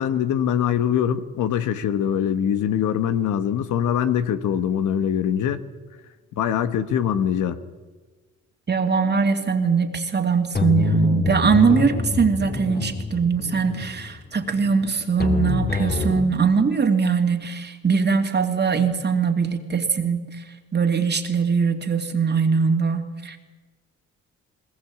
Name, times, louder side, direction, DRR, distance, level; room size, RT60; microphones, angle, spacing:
voice 1, 0.0-5.6 6.3-7.6, left 9 dB, 80° left, 10 dB, 1.3 m, -23 dB
voice 2, 8.7-20.3 20.7-23.4, right 5 dB, 35° right, 5 dB, 2.6 m, -21 dB
sound 1, 10.5-16.2, left 4 dB, 30° left, 2.1 m, -26 dB
21.0 x 20.0 x 8.5 m, 1.3 s
cardioid pair, 90°, 30 cm